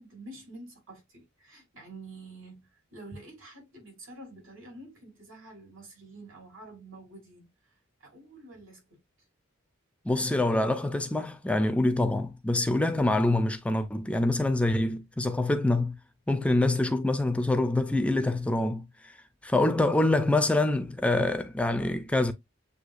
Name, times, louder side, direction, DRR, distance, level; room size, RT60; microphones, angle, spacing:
voice 1, 0.0-7.7 8.0-9.0, right 2 dB, 80° right, 3.3 m, -48 dB
voice 2, 10.0-15.9 16.3-19.2 19.4-22.3, left 2 dB, 5° left, 0.4 m, -25 dB
8.0 x 2.7 x 2.4 m
head